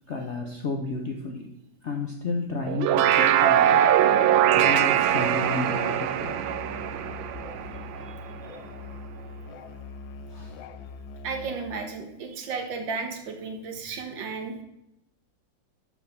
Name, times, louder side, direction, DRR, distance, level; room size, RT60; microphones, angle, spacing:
voice 1, 0.1-1.5 1.8-3.8 4.5-6.4 10.3-10.6, left 3 dB, 55° left, 2 dB, 0.7 m, -32 dB
sound 1, 2.7-8.2, right 10 dB, 85° right, 1.4 m, -22 dB
Musical instrument, 6.2-11.8, left 4 dB, 85° left, 1.4 m, -42 dB
voice 2, 11.2-14.6, right 4 dB, 70° right, 4 dB, 1.9 m, -33 dB
6.2 x 6.2 x 6.5 m, 0.84 s
omnidirectional pair, 2.1 m